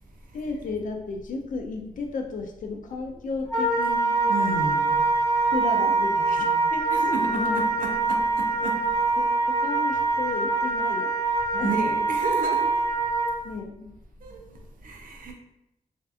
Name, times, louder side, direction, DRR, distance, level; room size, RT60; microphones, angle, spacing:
voice 1, 0.3-4.3 5.5-6.8 7.4-7.6 9.2-9.3 9.6-11.2 11.5-11.8 13.4-13.9, left 4 dB, 70° left, 3 dB, 0.4 m, -33 dB
Wind instrument woodwind instrument, 3.5-13.4, right 3 dB, 25° left, 0.7 m, -24 dB
voice 2, 4.3-5.1 6.9-8.9 11.6-12.8 14.2-15.3, right 3 dB, 80° right, 1 dB, 0.5 m, -32 dB
2.5 x 2.4 x 2.3 m, 0.88 s
wide cardioid pair, 135°, 14 cm